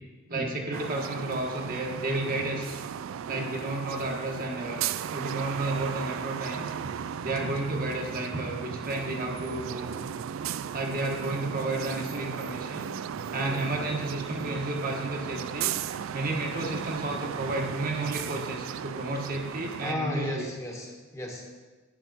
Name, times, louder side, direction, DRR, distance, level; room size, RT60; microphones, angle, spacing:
voice 1, 0.3-2.8 3.3-4.8 5.1-10.0 10.7-15.8 16.1-20.4, right 2 dB, 40° right, 0 dB, 1.3 m, -32 dB
sound 1, 0.7-19.9, right 8 dB, 65° right, 0.3 m, -36 dB
voice 2, 19.8-21.6, left 1 dB, 15° left, 0 dB, 1.3 m, -34 dB
11.0 x 9.2 x 4.0 m, 1.3 s
head